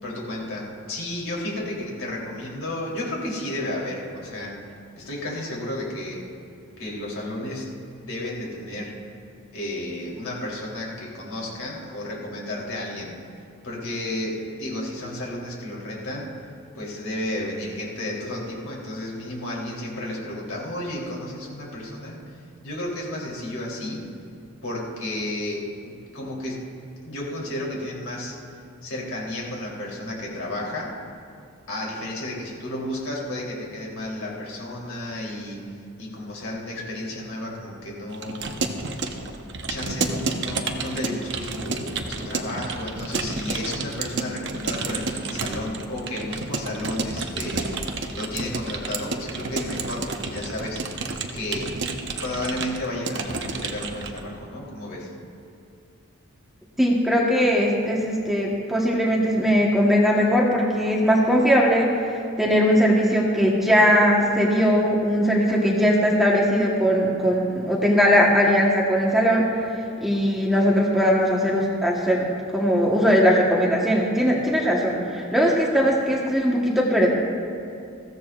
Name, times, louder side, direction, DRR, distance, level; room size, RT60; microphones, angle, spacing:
voice 1, 0.0-4.6 4.9-6.2 6.8-9.0 9.5-13.2 13.6-16.3 16.7-24.1 24.6-28.4 28.8-31.0 31.7-39.2 39.7-47.8 48.1-51.8 52.2-55.1, left 1 dB, 75° left, -4 dB, 3.3 m, -32 dB
Keyboard (musical) / Computer keyboard, 38.1-54.2, right 3 dB, 55° right, 0.9 m, -30 dB
voice 2, 56.8-69.7 70.0-72.3 72.5-77.1, equal, ahead, -3 dB, 1.2 m, -20 dB
21.0 x 15.5 x 2.5 m, 2.4 s
head